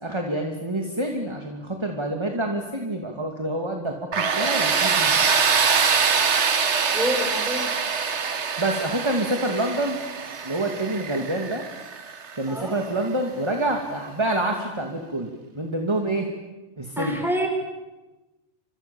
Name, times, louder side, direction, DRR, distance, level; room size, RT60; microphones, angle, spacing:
voice 1, 0.0-5.3 8.6-10.0 10.4-11.6 12.4-16.3 16.8-17.2, right 1 dB, 25° right, 2 dB, 2.5 m, -27 dB
Tools, 4.1-12.9, right 5 dB, 70° right, 1.6 m, -24 dB
voice 2, 6.9-7.7 12.5-12.8 17.0-17.5, equal, ahead, 2 dB, 6.0 m, -27 dB
30.0 x 27.0 x 7.2 m, 1.1 s
omnidirectional pair, 1.2 m